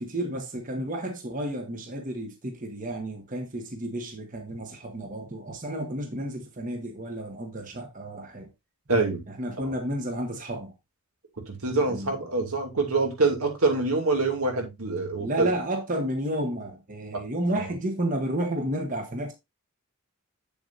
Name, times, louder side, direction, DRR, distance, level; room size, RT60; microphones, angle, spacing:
voice 1, 0.0-8.5 9.4-10.7 11.9-12.1 15.2-19.3, right 1 dB, 35° right, 1.1 m, -31 dB
voice 2, 8.9-9.2 9.6-9.7 11.5-15.5 17.1-17.2 17.5-17.7, right 3 dB, 90° right, 2.4 m, -25 dB
7.8 x 7.1 x 2.5 m
head